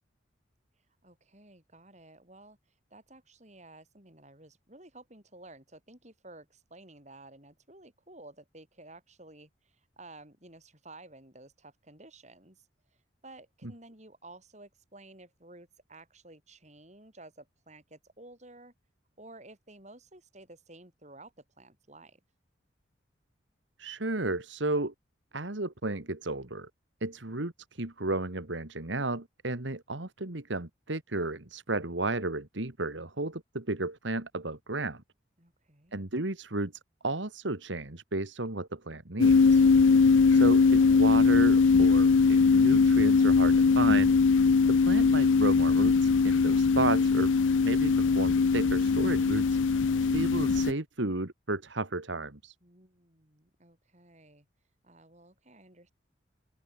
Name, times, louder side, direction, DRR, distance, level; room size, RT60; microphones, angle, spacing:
voice 1, 1.0-2.6 2.9-12.7 13.2-18.7 19.2-22.2 35.4-36.0 52.6-54.5 54.8-55.9, right 2 dB, 35° right, 6.4 m, -53 dB
voice 2, 23.8-24.9 25.3-26.7 27.0-35.0 35.9-36.7 37.0-39.6 40.3-44.1 44.7-47.3 47.6-49.8 50.1-52.5, right 2 dB, 75° right, 2.2 m, -33 dB
sound 1, 39.2-50.7, left 4 dB, 80° left, 0.5 m, -21 dB
open air
head